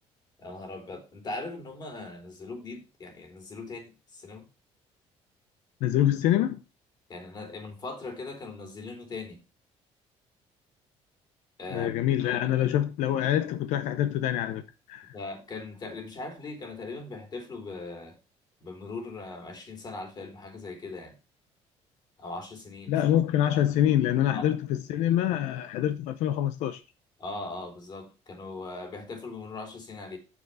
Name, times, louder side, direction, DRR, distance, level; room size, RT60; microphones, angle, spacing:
voice 1, 0.4-4.5 7.1-9.4 11.6-11.9 12.3-12.4 15.1-18.2 18.6-21.1 22.2-22.9 24.3-24.5 27.2-30.2, left 3 dB, 35° left, 3.4 m, -40 dB
voice 2, 5.8-6.6 11.7-14.6 14.9-15.1 22.9-26.8, left 11 dB, 90° left, 0.7 m, -25 dB
7.1 x 6.8 x 5.5 m
cardioid pair, 130°, 12 cm